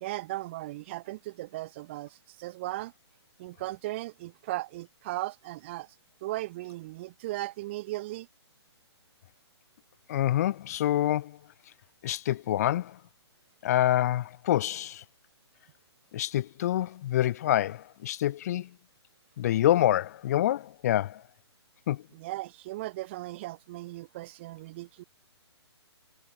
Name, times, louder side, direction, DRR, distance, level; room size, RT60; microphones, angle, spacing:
voice 1, 0.0-2.9 3.4-5.9 6.2-8.3 22.1-25.0, right 18 dB, 25° right, 0.5 m, -37 dB
voice 2, 10.1-11.4 12.0-13.0 13.6-15.0 16.1-18.7 19.4-21.2 21.9-22.0, left 13 dB, 35° left, 0.6 m, -26 dB
figure-of-eight pair, 130°, 14 cm